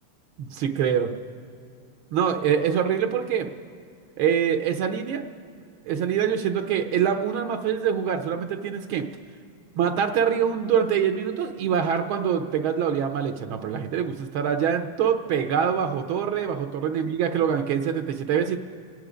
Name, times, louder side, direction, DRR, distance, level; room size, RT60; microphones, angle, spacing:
voice 1, 0.4-1.2 2.1-3.5 4.2-5.2 5.8-9.1 9.8-18.6, right 8 dB, 75° right, 6 dB, 1.5 m, -24 dB
27.5 x 9.4 x 5.0 m, 2.4 s
omnidirectional pair, 2.4 m